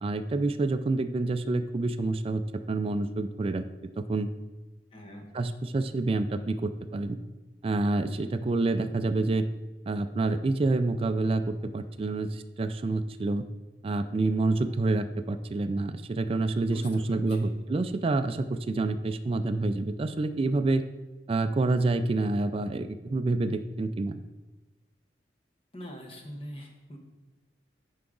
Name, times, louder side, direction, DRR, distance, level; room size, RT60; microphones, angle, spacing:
voice 1, 0.0-2.4 2.7-3.6 4.0-4.3 5.3-7.2 7.6-9.5 9.9-13.4 13.8-20.8 21.3-24.2, right 2 dB, 30° right, 9 dB, 0.3 m, -28 dB
voice 2, 4.9-5.3 16.6-17.6 25.7-27.0, equal, 30° left, 2 dB, 1.1 m, -43 dB
9.7 x 4.7 x 3.8 m, 1.2 s
head